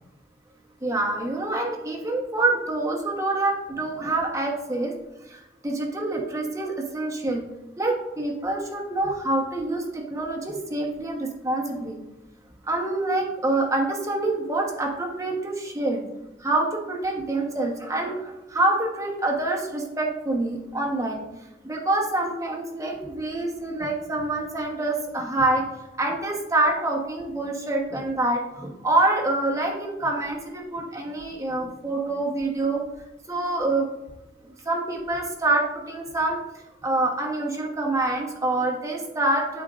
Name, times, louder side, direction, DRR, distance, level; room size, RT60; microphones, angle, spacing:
voice 1, 0.8-4.9 5.3-7.4 7.8-12.0 12.6-16.0 16.4-21.2 21.6-25.6 26.0-32.8 33.3-33.9 34.5-36.4 36.8-39.6, right 2 dB, 20° right, 0 dB, 1.1 m, -26 dB
12.0 x 4.5 x 2.5 m, 0.97 s
head